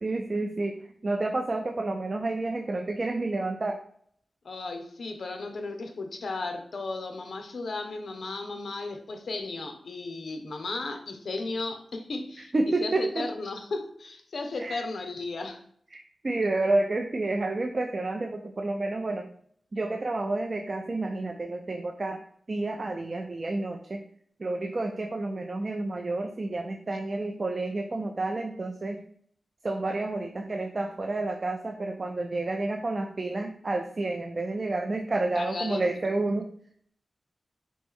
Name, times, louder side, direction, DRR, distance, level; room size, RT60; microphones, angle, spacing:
voice 1, 0.0-3.8 12.5-13.3 14.6-14.8 15.9-19.3 19.7-22.2 22.5-24.0 24.4-29.0 29.6-36.5, right 2 dB, 45° right, 4 dB, 0.4 m, -30 dB
voice 2, 4.4-12.5 12.8-15.6 35.4-35.8, left 3 dB, 75° left, 5 dB, 0.7 m, -35 dB
4.1 x 3.0 x 3.6 m, 0.63 s
wide cardioid pair, 80°, 0 cm